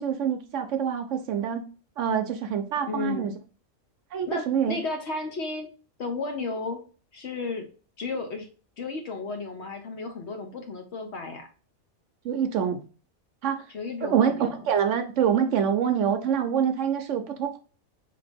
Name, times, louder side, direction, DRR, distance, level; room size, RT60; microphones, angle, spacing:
voice 1, 0.0-1.6 2.0-3.3 4.1-4.8 12.2-12.8 13.4-13.6 14.0-17.6, right 8 dB, 65° right, 7 dB, 0.9 m, -25 dB
voice 2, 2.8-3.4 4.2-5.7 6.0-6.8 7.1-7.6 8.0-8.5 8.8-11.5 13.7-14.6, left 3 dB, 55° left, 4 dB, 1.1 m, -33 dB
5.0 x 2.9 x 3.3 m, 0.37 s
omnidirectional pair, 1.5 m